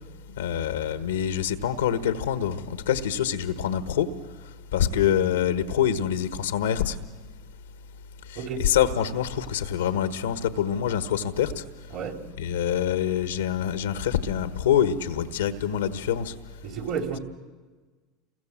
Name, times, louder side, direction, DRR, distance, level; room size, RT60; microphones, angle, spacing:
voice 1, 0.3-4.1 4.7-7.0 8.3-11.6 12.4-16.3, left 9 dB, 90° left, 1.3 m, -25 dB
voice 2, 16.6-17.2, right 6 dB, 50° right, 3.1 m, -31 dB
28.0 x 22.5 x 7.5 m
hypercardioid pair, 95°, 0 cm